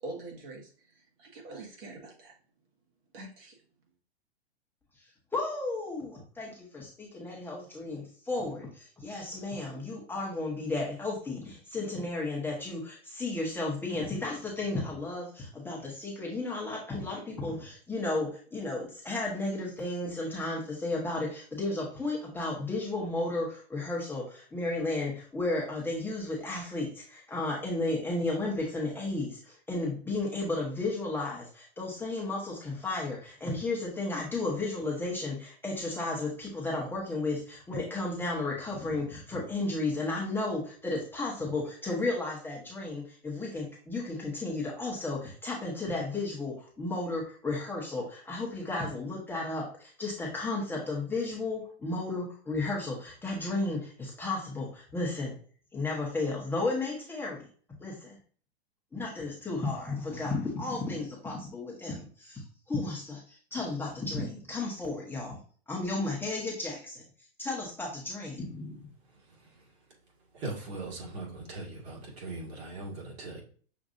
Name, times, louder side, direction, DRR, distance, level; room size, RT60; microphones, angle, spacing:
voice 1, 0.0-2.3 3.1-3.6, right 2 dB, 55° right, 1 dB, 1.6 m, -44 dB
voice 2, 5.3-55.3 55.7-57.5 57.8-58.2 58.9-65.4 65.7-67.0 67.4-68.9, left 2 dB, 5° left, -3 dB, 0.8 m, -33 dB
voice 3, 69.0-69.9 70.3-73.4, right 2 dB, 75° right, -2 dB, 2.0 m, -40 dB
6.3 x 2.6 x 2.5 m, 0.43 s
hypercardioid pair, 140°, 33 cm